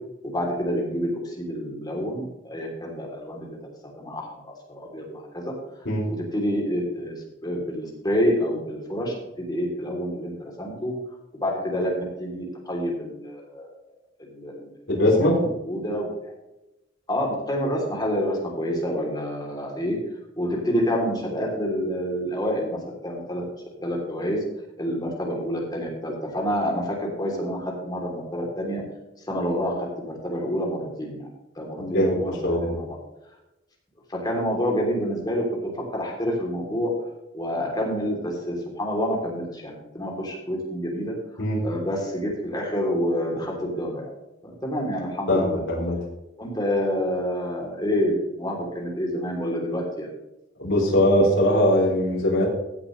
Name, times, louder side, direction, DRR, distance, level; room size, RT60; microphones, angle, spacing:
voice 1, 0.2-3.6 3.9-5.5 6.1-7.1 7.4-10.9 11.4-13.7 14.2-14.7 15.2-16.3 17.1-20.0 20.4-22.8 23.0-23.4 23.8-24.4 24.8-28.8 29.3-31.3 31.5-32.8 34.1-36.9 37.3-41.1 41.6-44.0 44.6-45.6 46.4-50.1, equal, 20° left, -1 dB, 3.3 m, -28 dB
voice 2, 14.9-15.5 31.8-32.7 41.4-41.6 45.3-46.0 50.6-52.5, left 1 dB, 80° left, -3 dB, 3.7 m, -21 dB
15.5 x 8.0 x 3.3 m, 0.95 s
head